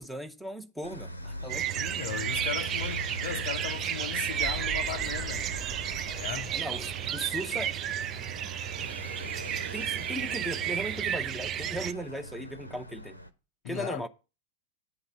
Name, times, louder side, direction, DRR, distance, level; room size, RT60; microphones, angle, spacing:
voice 1, 0.0-1.8 6.5-7.8 9.7-13.2 13.6-14.1, right 1 dB, 5° right, 0.8 m, -37 dB
sound 1, 0.8-13.3, left 1 dB, 90° left, 0.8 m, -42 dB
sound 2, 1.5-11.9, right 10 dB, 30° right, 0.4 m, -32 dB
voice 2, 1.7-5.6 6.1-6.5 13.6-14.1, left 11 dB, 55° left, 0.5 m, -37 dB
sound 3, 4.3-8.2, right 4 dB, 50° right, 1.2 m, -44 dB
9.8 x 3.9 x 7.4 m
figure-of-eight pair, 90°, 0 cm